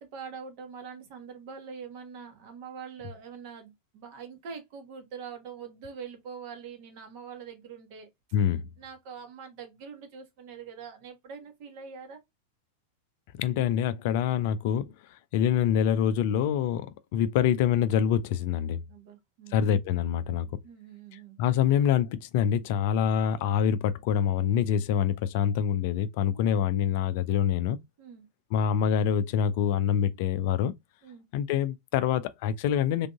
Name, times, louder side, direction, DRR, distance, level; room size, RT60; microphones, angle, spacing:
voice 1, 0.0-8.1 8.8-12.2 18.9-19.7 20.6-21.4 26.3-26.5 28.0-28.3 31.0-31.2, right 6 dB, 45° right, 1.2 m, -44 dB
voice 2, 8.3-8.6 13.4-18.8 19.5-20.5 21.4-27.8 28.5-30.7 31.3-33.1, left 9 dB, 50° left, 0.4 m, -25 dB
3.7 x 3.4 x 2.3 m
figure-of-eight pair, 90°, 0 cm